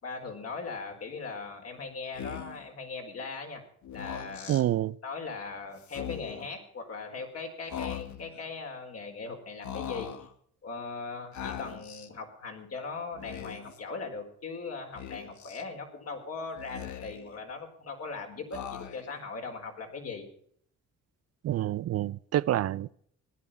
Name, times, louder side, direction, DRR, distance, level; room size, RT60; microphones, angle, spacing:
voice 1, 0.0-3.6 3.9-4.6 5.0-10.1 10.6-20.3, left 4 dB, 55° left, 4.4 m, -39 dB
Speech, 2.1-2.7 3.8-4.6 5.8-6.5 7.7-8.4 9.6-10.3 11.3-12.1 13.1-13.8 15.0-15.6 16.6-17.4 18.5-19.2, left 8 dB, 70° left, 1.6 m, -40 dB
voice 2, 4.5-5.0 21.4-22.9, right 13 dB, 55° right, 0.5 m, -27 dB
16.0 x 11.0 x 5.8 m
cardioid pair, 90°, 30 cm